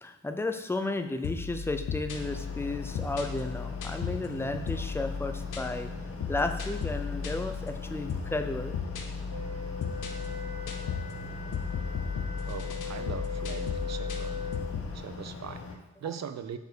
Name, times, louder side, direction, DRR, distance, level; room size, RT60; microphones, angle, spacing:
voice 1, 0.0-5.9 6.3-8.7, left 2 dB, 10° left, 7 dB, 0.4 m, -33 dB
sound 1, 1.2-15.0, left 5 dB, 90° left, 0.8 m, -36 dB
sound 2, 2.1-15.8, left 4 dB, 50° left, 0.9 m, -42 dB
Wind instrument woodwind instrument, 9.3-14.8, left 5 dB, 30° right, 1.8 m, -40 dB
voice 2, 12.4-14.4 14.9-16.6, right 8 dB, 60° right, 10 dB, 0.5 m, -40 dB
5.3 x 4.5 x 6.1 m, 0.98 s
wide cardioid pair, 170°, 30 cm